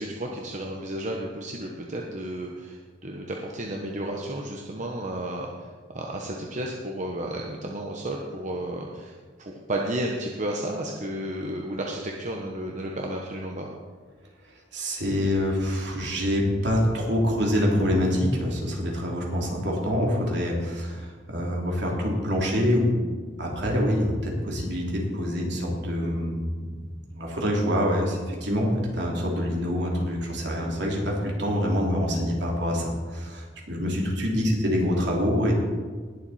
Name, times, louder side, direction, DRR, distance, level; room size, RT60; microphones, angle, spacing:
voice 1, 0.0-13.7, right 1 dB, 40° right, 0 dB, 1.1 m, -32 dB
voice 2, 14.7-23.0 23.4-26.7 27.1-35.5, equal, 65° right, -2 dB, 3.0 m, -26 dB
19.5 x 7.5 x 4.2 m, 1.5 s
head